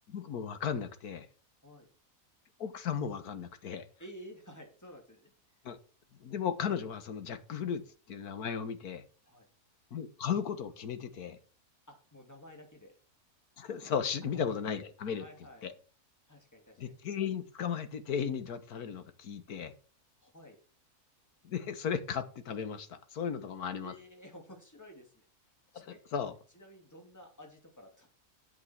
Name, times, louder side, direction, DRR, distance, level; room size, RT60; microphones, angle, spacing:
voice 1, 0.1-1.3 2.6-3.9 5.6-5.8 6.2-9.0 9.9-11.4 13.6-15.2 15.6-15.7 16.8-19.7 21.4-23.9 25.7-26.4, left 7 dB, 75° left, 1.7 m, -35 dB
voice 2, 4.0-5.3 9.2-9.5 11.9-13.0 14.2-14.4 15.2-15.6 16.3-16.9 20.2-20.6 23.8-25.3 25.7-26.0 26.5-28.1, equal, 10° left, 2.7 m, -52 dB
9.5 x 8.5 x 4.6 m
omnidirectional pair, 1.6 m